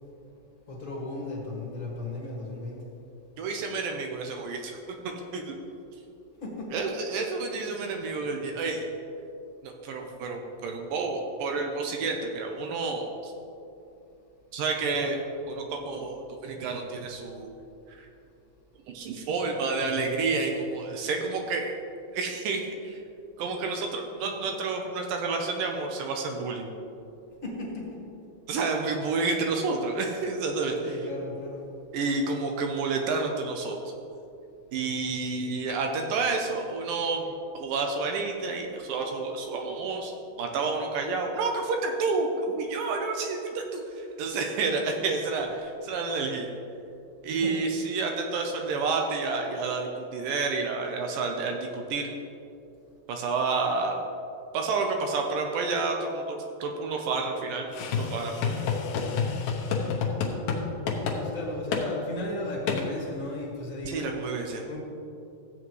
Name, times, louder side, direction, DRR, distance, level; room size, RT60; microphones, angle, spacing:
voice 1, 0.7-2.8 6.4-6.8 27.4-27.8 30.5-31.7 47.3-47.5 61.1-64.1 64.6-64.8, left 2 dB, 30° left, -4 dB, 1.7 m, -35 dB
voice 2, 3.4-5.6 6.7-8.8 9.6-13.3 14.5-15.2 15.5-17.5 17.9-18.1 18.9-21.7 22.1-23.0 23.4-26.7 28.5-30.8 31.9-33.8 34.7-37.2 37.5-40.1 40.4-46.5 47.2-52.1 53.1-54.0 54.5-58.6 63.9-64.6, right 4 dB, 75° right, 2 dB, 2.3 m, -30 dB
sound 1, 57.7-60.6 60.9-61.2 61.7-61.9 62.7-62.8, left 5 dB, 75° left, 2.6 m, -28 dB
14.0 x 8.5 x 3.2 m, 2.8 s
omnidirectional pair, 4.2 m